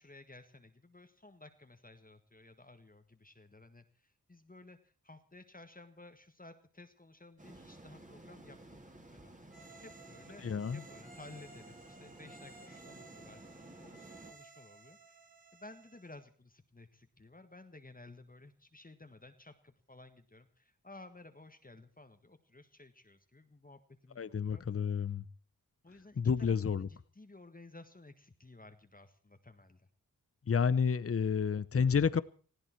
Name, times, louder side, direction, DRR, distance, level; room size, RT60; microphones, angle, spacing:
voice 1, 0.0-8.8 9.1-9.3 9.8-10.5 10.7-15.2 15.5-24.7 25.8-29.9, left 2 dB, 25° left, 1.6 m, -55 dB
sound 1, 7.4-14.3, right 1 dB, 20° right, 2.7 m, -54 dB
sound 2, 9.5-16.2, right 3 dB, 75° right, 7.8 m, -57 dB
voice 2, 10.4-10.8 24.2-25.2 26.2-26.9 30.5-32.2, left 6 dB, 40° left, 0.7 m, -30 dB
20.0 x 15.5 x 4.5 m
cardioid pair, 55°, 35 cm